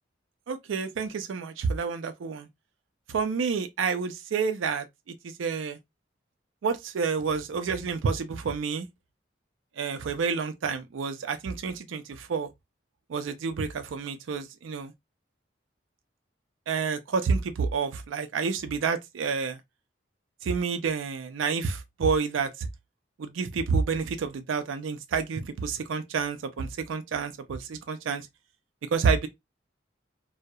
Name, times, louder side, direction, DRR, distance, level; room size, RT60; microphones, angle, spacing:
voice 1, 0.5-2.5 3.1-5.8 6.6-8.9 9.8-12.5 13.1-14.9 16.7-19.6 20.4-22.7 23.2-28.3 28.9-29.3, right 5 dB, 90° right, 0.4 m, -29 dB
2.3 x 2.0 x 2.6 m
head